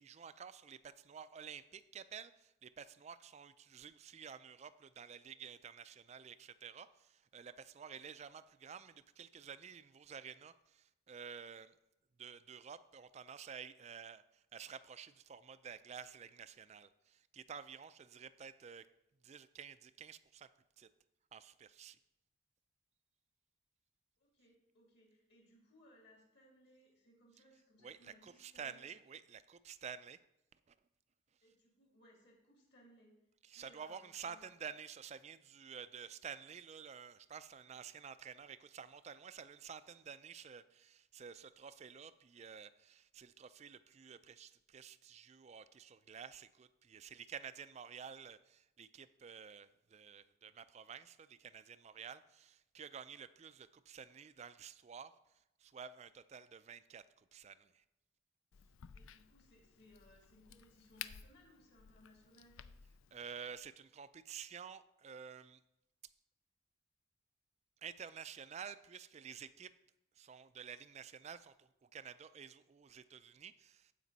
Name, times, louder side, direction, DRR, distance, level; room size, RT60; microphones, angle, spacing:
voice 1, 0.0-11.7 12.2-18.9 19.2-20.5 20.8-20.9 21.3-22.0 27.8-30.2 30.7-30.8 33.4-55.1 55.6-57.8 63.1-65.6 67.8-69.7 70.2-73.9, right 7 dB, 35° right, 14 dB, 0.3 m, -51 dB
voice 2, 24.2-28.8 31.4-33.1 33.4-34.5 58.9-62.7, left 1 dB, 55° left, -2 dB, 3.0 m, -65 dB
Crack, 58.5-63.6, left 9 dB, 85° left, 0.4 m, -54 dB
15.0 x 5.2 x 4.1 m, 0.89 s
head